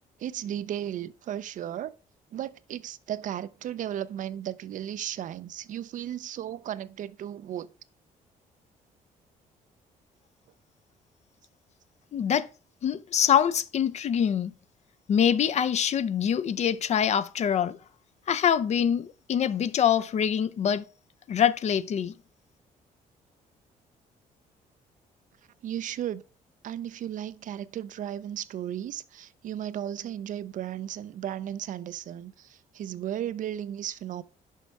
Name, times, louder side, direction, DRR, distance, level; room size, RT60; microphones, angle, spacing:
voice 1, 0.2-1.9 2.3-7.7 25.6-26.2 26.6-34.2, right 11 dB, 60° right, 0.5 m, -35 dB
voice 2, 12.1-12.5 12.8-14.5 15.1-17.8 18.3-20.8 21.3-22.1, left 8 dB, 45° left, 0.5 m, -24 dB
6.5 x 5.3 x 4.6 m
cardioid pair, 105°, 15 cm